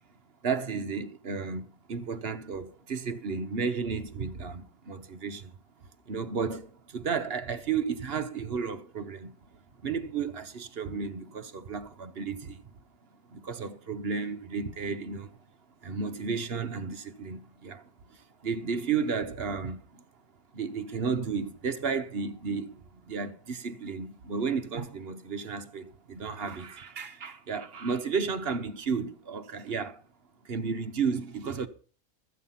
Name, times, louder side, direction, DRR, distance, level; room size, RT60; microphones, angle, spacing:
voice 1, 0.4-5.5 5.8-9.3 9.8-12.7 13.3-15.4 15.8-20.0 20.5-30.0 30.4-31.7, right 5 dB, 50° right, 1.1 m, -33 dB
14.0 x 8.4 x 5.7 m
omnidirectional pair, 1.5 m